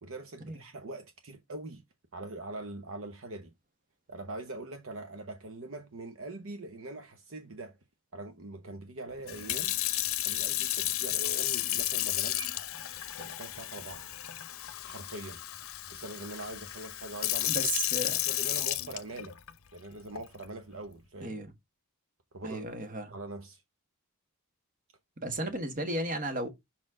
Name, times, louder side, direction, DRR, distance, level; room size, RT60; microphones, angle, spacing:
voice 1, 0.0-1.8 2.1-3.5 4.1-7.8 8.1-9.8 10.2-12.6 13.2-14.0 14.8-15.4 15.9-17.7 18.3-19.4 19.7-21.3 22.3-22.6 23.1-23.6, right 2 dB, 60° right, 0.8 m, -42 dB
Sink (filling or washing) / Fill (with liquid), 9.3-19.5 20.2-20.4, left 15 dB, 65° left, 0.7 m, -33 dB
voice 2, 17.5-18.2 21.2-21.5 22.4-23.1 25.2-26.5, right 1 dB, 35° right, 1.4 m, -34 dB
6.0 x 4.2 x 3.7 m
head